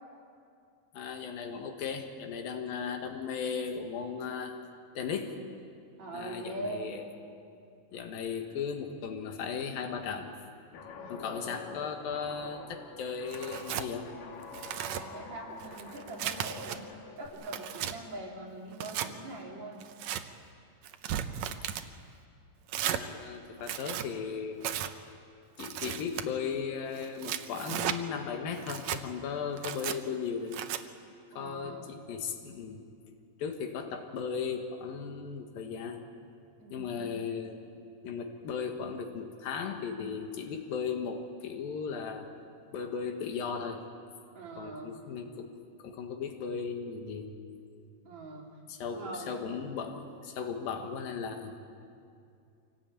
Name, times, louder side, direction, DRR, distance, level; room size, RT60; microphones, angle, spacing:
voice 1, 0.9-4.6 4.9-5.4 6.1-7.0 7.9-10.3 11.1-14.1 21.1-21.3 22.9-24.8 25.6-30.6 31.3-32.8 33.4-36.0 36.7-37.6 38.0-42.3 42.7-43.8 44.6-45.5 45.8-47.3 48.7-51.6, left 6 dB, 90° left, 5 dB, 3.3 m, -36 dB
voice 2, 6.0-7.0 11.0-11.5 14.8-16.8 17.2-19.9 31.3-32.0 36.6-37.1 44.3-45.0 48.0-48.5 48.9-49.5, right 2 dB, 55° right, -2 dB, 4.2 m, -42 dB
Guitar, 10.7-17.3, left 5 dB, 75° left, 3.3 m, -47 dB
Tearing, 13.3-13.9 14.4-15.0 15.6-16.8 17.3-17.9 18.7-19.1 19.8-20.2 20.8-21.9 22.7-23.0 23.6-24.1 24.6-24.9 25.6-26.2 27.0-28.0 28.6-29.0 29.6-30.0 30.5-30.8, right 10 dB, 75° right, 1.6 m, -35 dB
25.0 x 18.0 x 8.8 m, 2.5 s
omnidirectional pair, 4.0 m